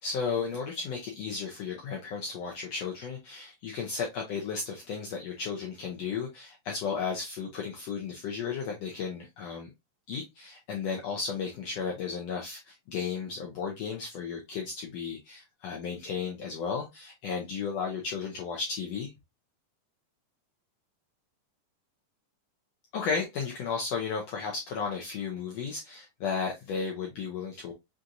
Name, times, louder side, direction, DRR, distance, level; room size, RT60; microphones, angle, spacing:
voice 1, 0.0-9.7 10.1-19.1 22.9-27.7, left 5 dB, 90° left, 0 dB, 1.4 m, -34 dB
6.0 x 2.7 x 2.5 m, 0.21 s
omnidirectional pair, 4.0 m